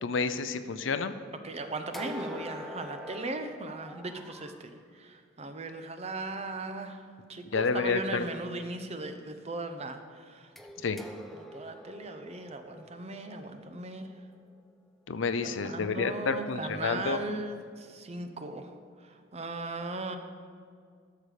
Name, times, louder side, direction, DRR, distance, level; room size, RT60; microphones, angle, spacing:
voice 1, 0.0-1.1 7.5-8.2 10.8-11.0 15.1-17.2, left 4 dB, 80° left, 11 dB, 0.6 m, -29 dB
voice 2, 1.4-7.0 7.3-10.5 10.8-10.9 11.3-14.1 15.4-18.7 19.0-20.2, right 2 dB, 35° right, 7 dB, 0.7 m, -38 dB
sound 1, 1.9-4.6 10.6-14.6, equal, ahead, 0.6 m, -45 dB
12.5 x 6.8 x 4.9 m, 2.1 s
head